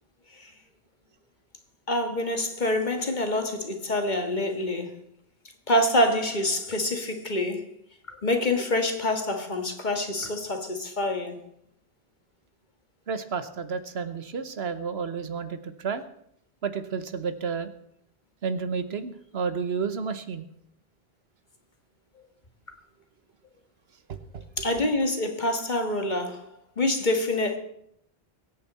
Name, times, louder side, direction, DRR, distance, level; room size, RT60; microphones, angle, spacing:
voice 1, 1.9-5.0 5.7-7.6 8.1-11.4 24.6-27.6, left 1 dB, 50° left, 1.8 m, -26 dB
voice 2, 13.1-16.0 16.6-17.7 18.4-20.5 24.1-24.4, right 5 dB, 85° right, 1.3 m, -31 dB
23.0 x 9.1 x 4.3 m
omnidirectional pair, 1.0 m